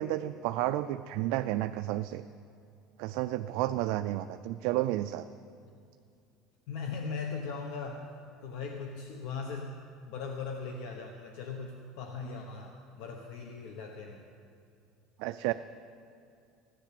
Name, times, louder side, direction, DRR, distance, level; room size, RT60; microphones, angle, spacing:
voice 1, 0.0-2.2 3.0-5.2 15.2-15.5, right 15 dB, 65° right, 10 dB, 0.4 m, -31 dB
voice 2, 6.7-8.1 8.4-9.7 10.0-14.3, left 5 dB, 65° left, 3 dB, 1.1 m, -39 dB
15.5 x 10.0 x 7.6 m, 2.5 s
cardioid pair, 170°, 0 cm